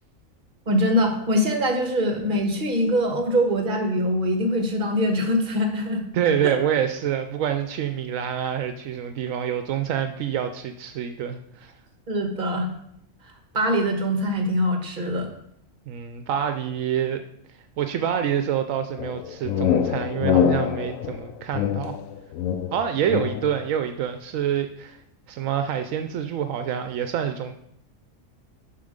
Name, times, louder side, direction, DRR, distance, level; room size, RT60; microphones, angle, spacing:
voice 1, 0.7-6.0 6.4-6.6 12.1-12.7 13.5-15.3, equal, 40° right, 3 dB, 1.4 m, -23 dB
voice 2, 6.1-11.7 15.9-17.2 17.8-21.9 22.7-25.0 25.3-27.5, right 9 dB, 80° right, 7 dB, 1.0 m, -26 dB
sound 1, 19.0-23.6, left 8 dB, 85° left, 1.0 m, -25 dB
7.5 x 5.9 x 5.1 m, 0.73 s
omnidirectional pair, 1.4 m